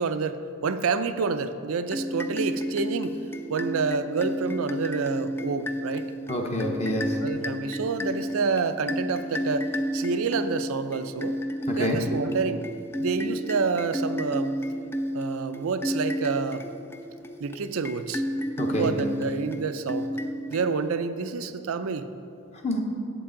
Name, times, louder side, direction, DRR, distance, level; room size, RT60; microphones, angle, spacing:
voice 1, 0.0-3.2 3.5-6.1 7.2-11.4 11.8-12.6 13.0-14.6 15.1-16.7 17.4-18.2 18.8-20.1 20.5-22.1, right 5 dB, 65° right, 10 dB, 0.4 m, -28 dB
sound 1, 1.9-21.1, equal, 10° left, 0.3 m, -32 dB
voice 2, 6.3-7.2 11.7-12.0 18.6-18.9 22.6-22.8, equal, 30° left, 1 dB, 0.8 m, -27 dB
11.5 x 8.0 x 3.8 m, 2.6 s
head